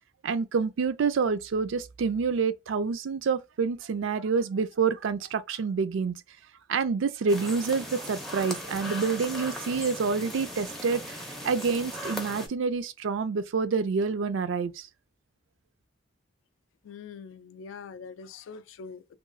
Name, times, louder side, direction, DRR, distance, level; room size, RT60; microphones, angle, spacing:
voice 1, 0.2-6.1 6.7-14.9, right 5 dB, 80° right, 0.4 m, -28 dB
sound 1, 7.3-12.5, equal, ahead, 0.4 m, -38 dB
voice 2, 16.8-19.2, left 5 dB, 85° left, 0.3 m, -43 dB
2.9 x 2.3 x 2.5 m
head